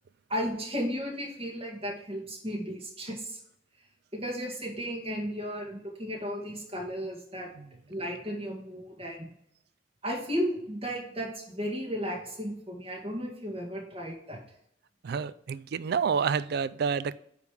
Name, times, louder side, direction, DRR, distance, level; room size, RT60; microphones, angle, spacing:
voice 1, 0.3-3.4 4.1-7.5 7.9-9.3 10.0-14.4, equal, 30° right, -2 dB, 2.0 m, -34 dB
voice 2, 15.0-17.2, right 6 dB, 60° right, 16 dB, 0.3 m, -29 dB
9.7 x 3.3 x 5.0 m, 0.71 s
head